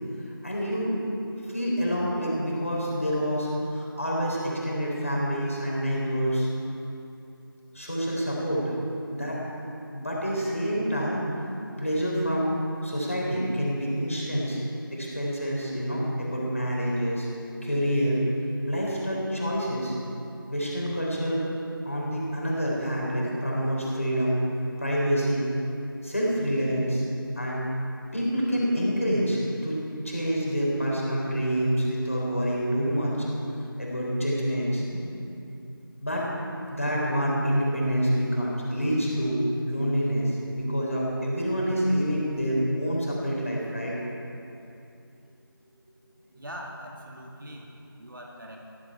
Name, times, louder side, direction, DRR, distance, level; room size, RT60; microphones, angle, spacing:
voice 1, 0.4-0.9 1.5-6.5 7.7-8.7 9.1-9.4 9.9-11.2 11.8-12.5 12.8-14.6 14.9-17.3 17.6-18.2 18.6-20.0 20.5-21.4 21.9-24.4 24.8-25.5 26.0-27.0 27.4-27.7 28.1-29.8 30.0-33.1 33.8-35.0 36.0-36.3 36.7-39.4 39.7-43.9, equal, 35° left, -4 dB, 3.6 m, -27 dB
voice 2, 46.4-47.7 48.0-48.6, equal, 60° right, -1 dB, 2.5 m, -41 dB
15.0 x 14.5 x 4.7 m, 2.7 s
figure-of-eight pair, 175°, 12 cm